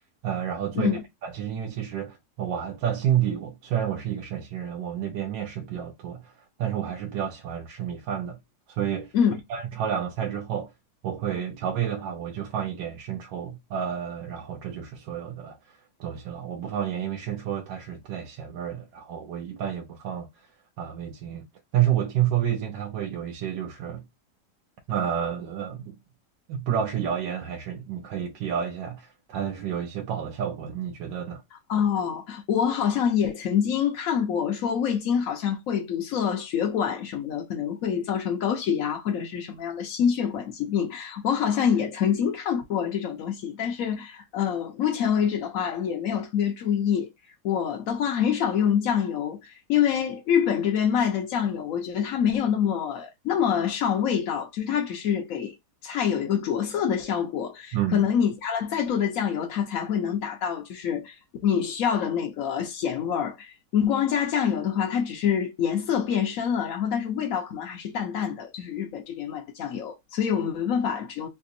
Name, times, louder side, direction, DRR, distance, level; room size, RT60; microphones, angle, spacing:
voice 1, 0.2-8.4 8.7-9.1 9.5-10.7 11.0-20.3 20.8-21.4 21.7-24.0 24.9-26.0 26.5-31.4 57.7-58.0, right 9 dB, 90° right, 1.3 m, -30 dB
voice 2, 31.7-47.1 47.4-55.5 55.8-61.2 61.4-71.3, left 8 dB, 65° left, 0.9 m, -26 dB
3.5 x 2.7 x 2.6 m
omnidirectional pair, 1.9 m